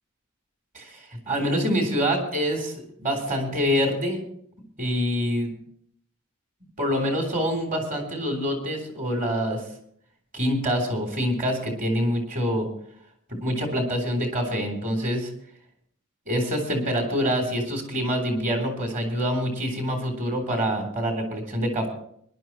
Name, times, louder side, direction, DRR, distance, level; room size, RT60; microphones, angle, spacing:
voice 1, 0.7-4.2 4.8-5.5 6.8-9.6 10.3-12.7 13.3-15.3 16.3-21.9, equal, 40° right, 3 dB, 3.4 m, -26 dB
23.5 x 11.5 x 3.0 m, 0.65 s
head